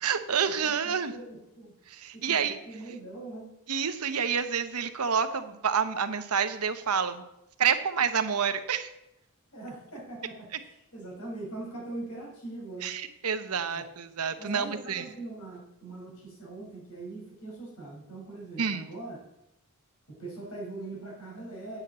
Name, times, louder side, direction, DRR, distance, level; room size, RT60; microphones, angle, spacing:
voice 1, 0.0-1.1 1.9-2.6 3.7-7.2 7.6-8.9 12.8-15.0 18.6-18.9, right 7 dB, 80° right, 10 dB, 0.9 m, -28 dB
voice 2, 0.6-1.7 2.1-3.5 9.5-12.9 13.6-13.8 14.4-19.2 20.2-21.8, right 2 dB, 75° left, -3 dB, 4.9 m, -41 dB
8.9 x 6.4 x 7.4 m, 0.84 s
head